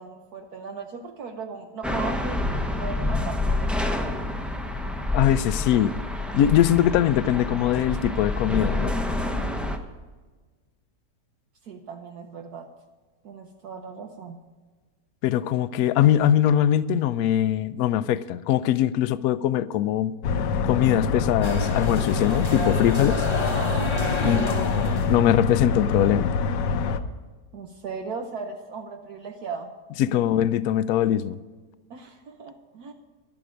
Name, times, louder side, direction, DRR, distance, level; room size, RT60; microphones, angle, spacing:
voice 1, 0.0-4.1 11.6-12.7 13.2-14.4 24.2-24.7 27.5-29.7 31.9-32.9, right 5 dB, 65° right, 4 dB, 1.3 m, -37 dB
sound 1, 1.8-9.8, left 1 dB, ahead, 0.4 m, -28 dB
voice 2, 5.1-6.0 6.3-8.9 15.2-20.2 20.6-23.3 24.2-26.3 30.0-31.4, left 11 dB, 70° left, 15 dB, 0.9 m, -22 dB
sound 2, 20.2-27.0, left 5 dB, 85° left, 1.4 m, -25 dB
sound 3, 21.4-25.2, left 2 dB, 20° left, 0.9 m, -30 dB
12.0 x 11.0 x 5.0 m, 1.4 s
omnidirectional pair, 1.8 m